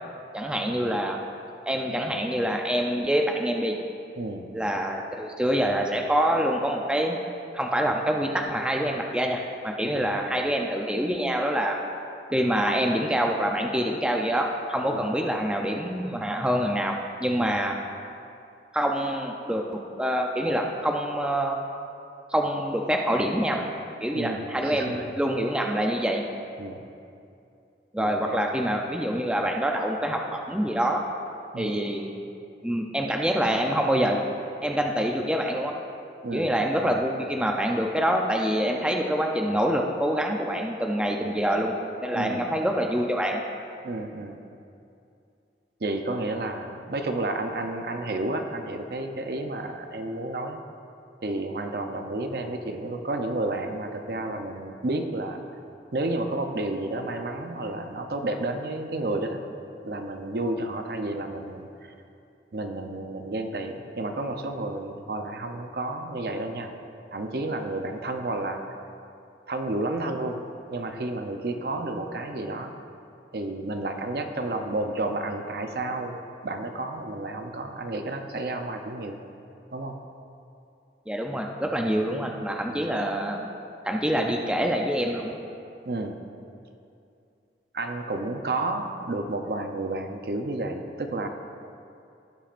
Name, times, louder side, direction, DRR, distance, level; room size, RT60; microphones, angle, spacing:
voice 1, 0.3-1.2 1.6-3.8 4.5-7.2 7.5-11.8 12.3-16.9 17.2-17.7 18.7-21.6 22.3-23.6 24.0-26.2 27.9-31.0 31.6-32.1 32.6-34.2 34.6-35.7 36.3-41.7 42.0-43.4 81.1-83.5 83.8-85.4, equal, 5° right, 1 dB, 0.5 m, -26 dB
voice 2, 4.2-4.6 9.8-10.1 14.9-15.1 17.4-17.5 24.1-24.9 25.6-25.7 26.6-26.8 28.0-28.4 31.5-31.8 36.2-36.5 42.1-42.4 43.8-44.4 45.8-50.6 51.2-55.4 55.9-59.4 59.8-61.9 62.5-66.7 67.1-68.6 69.5-72.7 73.3-76.2 76.4-79.2 79.7-79.9 82.7-82.8 85.9-86.2 87.7-91.3, right 2 dB, 60° right, 5 dB, 0.6 m, -31 dB
16.5 x 7.2 x 2.5 m, 2.6 s
head